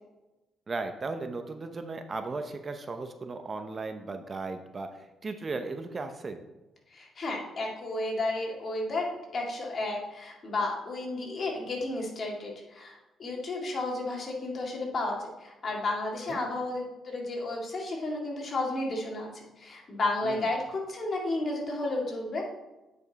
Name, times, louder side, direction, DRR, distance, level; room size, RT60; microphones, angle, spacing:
voice 1, 0.7-4.9 5.2-6.4 16.3-16.4 20.2-20.4, right 3 dB, 35° right, 8 dB, 0.7 m, -36 dB
voice 2, 6.9-22.4, left 2 dB, 45° left, 0 dB, 2.2 m, -32 dB
8.9 x 5.3 x 4.0 m, 1.0 s
cardioid pair, 90°, 0 cm